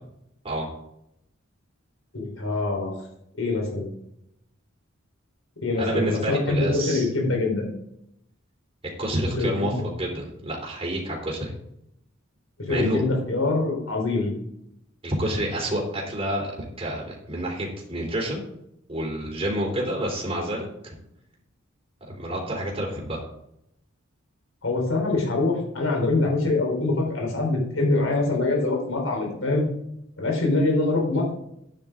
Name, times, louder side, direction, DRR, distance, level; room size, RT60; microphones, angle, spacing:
voice 1, 2.1-2.9 3.4-3.9 5.6-7.7 9.3-9.8 12.7-14.3 24.6-29.6 30.2-31.3, left 2 dB, 80° left, 0 dB, 4.4 m, -24 dB
voice 2, 5.8-7.1 9.0-11.5 12.7-13.0 15.0-18.4 18.9-20.6 22.1-23.2, right 1 dB, 30° right, -4 dB, 3.5 m, -28 dB
11.0 x 10.0 x 3.9 m, 0.76 s
head